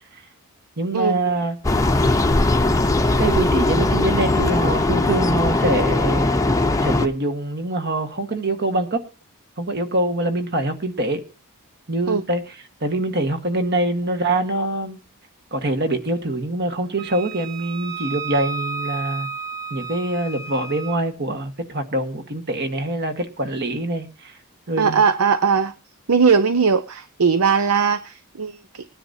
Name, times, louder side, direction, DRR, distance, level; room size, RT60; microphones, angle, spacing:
voice 1, 0.8-1.6 3.2-6.4 6.8-9.0 9.6-11.2 11.9-12.5 12.8-15.0 15.5-19.3 19.7-24.3 24.7-25.0, right 1 dB, 50° right, 1.5 m, -24 dB
sound 1, 1.6-7.1, left 2 dB, 15° left, 0.7 m, -19 dB
Wind instrument woodwind instrument, 17.0-21.0, right 6 dB, 15° right, 1.9 m, -32 dB
voice 2, 24.8-25.7 26.1-28.9, right 5 dB, 80° right, 0.7 m, -19 dB
21.0 x 10.0 x 2.7 m
head